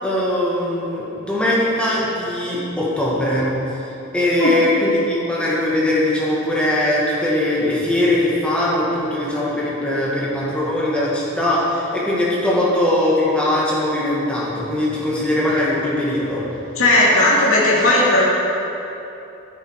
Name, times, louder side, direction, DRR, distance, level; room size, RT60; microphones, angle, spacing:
voice 1, 0.0-3.5 4.1-16.4, left 1 dB, 5° left, -7 dB, 1.9 m, -20 dB
voice 2, 16.8-18.3, left 1 dB, 70° left, -6 dB, 2.5 m, -15 dB
11.0 x 9.4 x 4.8 m, 2.9 s
head